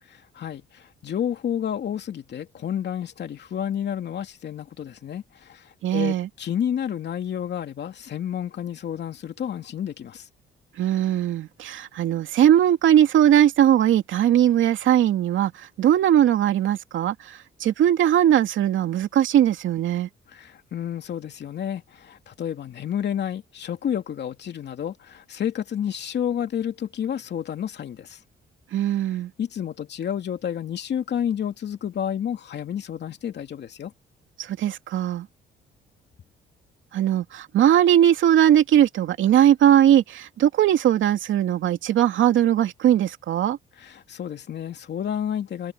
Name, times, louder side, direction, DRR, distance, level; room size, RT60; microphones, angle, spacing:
voice 1, 0.3-10.3 20.3-28.2 29.4-33.9 43.8-45.7, left 9 dB, 60° left, 2.7 m, -30 dB
voice 2, 5.8-6.3 10.8-15.5 15.8-17.1 17.6-20.1 28.7-29.3 34.4-35.3 36.9-43.6, right 11 dB, 75° right, 2.7 m, -19 dB
open air
cardioid pair, 90°, 20 cm